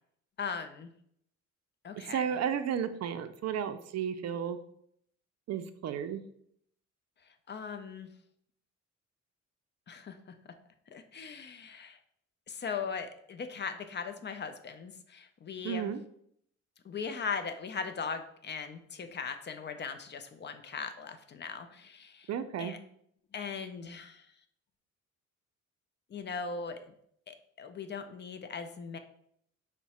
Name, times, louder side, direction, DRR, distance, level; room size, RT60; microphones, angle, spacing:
voice 1, 0.4-0.9 1.8-2.2 7.5-8.1 9.9-10.2 10.9-12.0 12.5-15.9 16.8-22.3 22.6-22.8 23.3-24.3 26.1-26.8 27.3-29.0, left 5 dB, 35° left, 8 dB, 0.4 m, -39 dB
voice 2, 2.1-4.6 5.5-6.2 15.6-16.0 22.3-22.7, right 8 dB, 60° right, 10 dB, 0.4 m, -33 dB
5.6 x 2.1 x 4.1 m, 0.69 s
cardioid pair, 105°, 30 cm